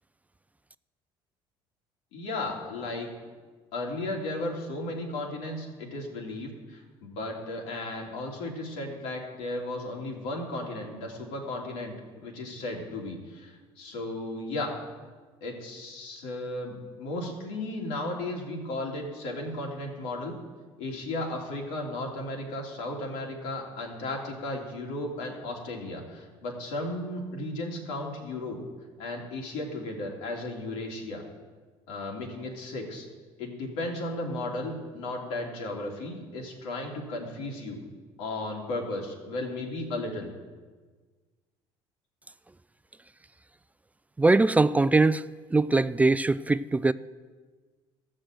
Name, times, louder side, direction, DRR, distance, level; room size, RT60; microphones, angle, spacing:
voice 1, 2.1-3.1 3.7-14.7 15.4-20.3 20.8-28.6 29.0-31.2 31.9-33.1 33.4-37.8 38.2-40.3, left 2 dB, 90° left, 2.8 m, -35 dB
voice 2, 44.2-45.2 45.5-46.9, right 3 dB, 15° right, 0.3 m, -21 dB
14.0 x 6.3 x 7.7 m
supercardioid pair, 95°, 11 cm